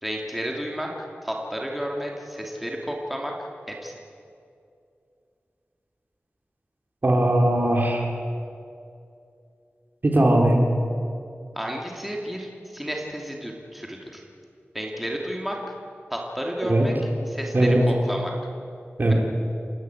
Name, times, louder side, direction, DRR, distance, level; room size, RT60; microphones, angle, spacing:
voice 1, 0.0-3.3 3.8-3.9 11.6-14.2 14.7-15.6 16.1-16.9 17.3-18.3 19.1-19.2, equal, 5° right, -1 dB, 2.7 m, -31 dB
voice 2, 7.0-8.0 10.0-10.6 16.6-16.9 17.5-17.8 19.0-19.1, right 1 dB, 45° right, 0 dB, 3.5 m, -19 dB
28.5 x 12.5 x 8.3 m, 2.5 s
wide cardioid pair, 85°, 4 cm